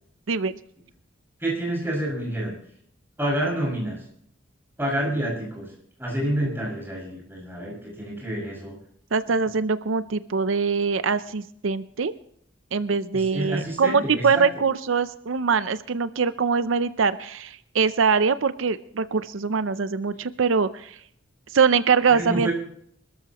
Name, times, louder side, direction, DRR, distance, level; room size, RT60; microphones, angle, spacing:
voice 1, 1.4-2.5 3.2-4.0 4.8-5.7 6.0-8.8 13.1-14.4 22.1-22.5, right 1 dB, 10° right, -2 dB, 6.2 m, -28 dB
voice 2, 9.1-12.1 12.7-21.0 21.5-22.5, right 5 dB, 80° right, 13 dB, 0.6 m, -23 dB
26.0 x 13.5 x 3.0 m, 0.67 s
head